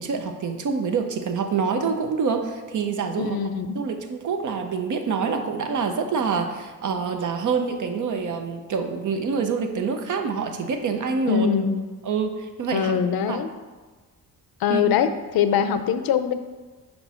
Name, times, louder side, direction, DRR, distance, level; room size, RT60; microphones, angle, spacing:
voice 1, 0.0-3.4 3.7-11.5 12.0-12.9 13.3-13.4 14.7-14.8, right 5 dB, 60° right, 6 dB, 0.7 m, -26 dB
voice 2, 3.2-3.8 11.3-11.8 12.7-13.5 14.6-16.3, left 8 dB, 90° left, 10 dB, 0.6 m, -22 dB
5.2 x 4.5 x 5.5 m, 1.4 s
wide cardioid pair, 160°, 35 cm